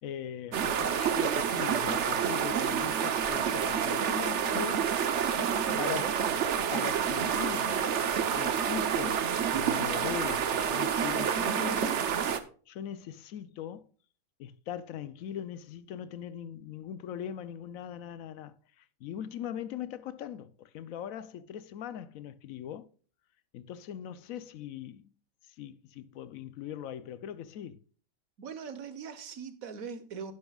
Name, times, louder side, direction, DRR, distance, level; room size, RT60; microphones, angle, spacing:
voice 1, 0.0-4.8 5.8-6.1 6.7-7.7 8.3-9.2 9.5-12.0 12.7-13.9 14.4-22.9 23.5-25.1 25.6-27.8, left 9 dB, 80° left, 1.1 m, -40 dB
sound 1, 0.5-12.4, right 8 dB, 60° right, 1.1 m, -28 dB
voice 2, 5.4-6.4 28.4-30.3, right 6 dB, 90° right, 1.6 m, -41 dB
11.0 x 10.5 x 2.3 m
omnidirectional pair, 1.4 m